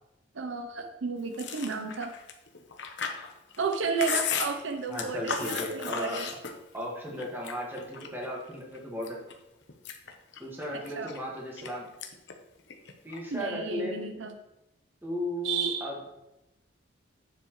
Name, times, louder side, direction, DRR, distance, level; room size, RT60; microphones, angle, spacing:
voice 1, 0.3-2.1 3.6-6.3 10.7-11.1 13.3-14.3 15.4-15.9, right 5 dB, 70° right, 6 dB, 0.6 m, -32 dB
Chewing mastication, 1.3-6.8 7.2-8.3 8.7-9.3 9.7-11.7 12.0-12.3 12.6-13.4, left 6 dB, 60° left, 0.9 m, -35 dB
voice 2, 4.9-6.2 6.7-9.2 10.4-11.8 13.0-13.9 15.0-16.0, equal, 10° right, -3 dB, 1.7 m, -35 dB
9.6 x 7.4 x 3.1 m, 0.93 s
head